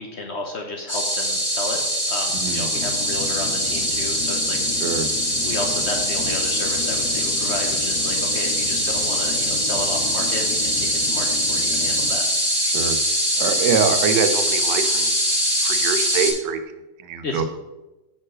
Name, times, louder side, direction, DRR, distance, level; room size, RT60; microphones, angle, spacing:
voice 1, 0.0-1.8 2.1-4.6 4.8-4.9 5.4-12.2 17.2-17.4, left 2 dB, 55° left, 2 dB, 0.8 m, -32 dB
sound 1, 0.9-16.3, equal, 30° left, 1.9 m, -22 dB
sound 2, 2.8-12.2, left 5 dB, 70° left, 1.2 m, -35 dB
voice 2, 13.4-15.1 15.6-16.6 17.0-17.4, right 6 dB, 85° right, 9 dB, 1.3 m, -24 dB
6.0 x 4.5 x 6.3 m, 1.1 s
omnidirectional pair, 1.8 m